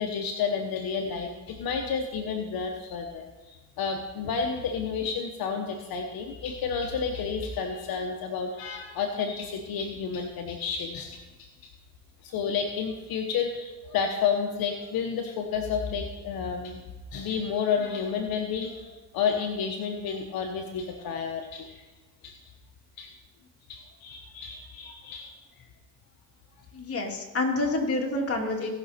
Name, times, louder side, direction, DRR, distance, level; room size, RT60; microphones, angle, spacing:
voice 1, 0.0-11.7 12.2-16.8 17.1-21.8 22.2-22.4 23.0-23.1 23.7-25.4 28.6-28.7, left 6 dB, 75° left, 3 dB, 1.1 m, -31 dB
voice 2, 26.7-28.7, left 2 dB, 40° left, 0 dB, 2.6 m, -28 dB
18.0 x 6.2 x 4.3 m, 1.2 s
cardioid pair, 85°, 36 cm